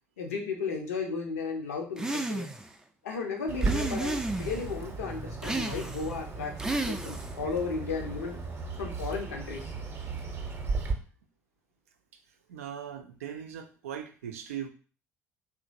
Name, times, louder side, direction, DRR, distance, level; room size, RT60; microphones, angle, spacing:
voice 1, 0.2-2.5 3.0-8.4 8.8-9.7, left 5 dB, 75° left, 1 dB, 0.6 m, -34 dB
sound 1, 2.0-2.7 3.6-4.7 5.4-6.1 6.6-7.4, right 2 dB, 5° right, 0.3 m, -32 dB
Bird, 3.5-10.9, right 4 dB, 30° right, 0.7 m, -35 dB
voice 2, 12.5-14.7, right 9 dB, 75° right, 6 dB, 0.4 m, -39 dB
3.0 x 2.5 x 2.5 m, 0.38 s
figure-of-eight pair, 55°, 8 cm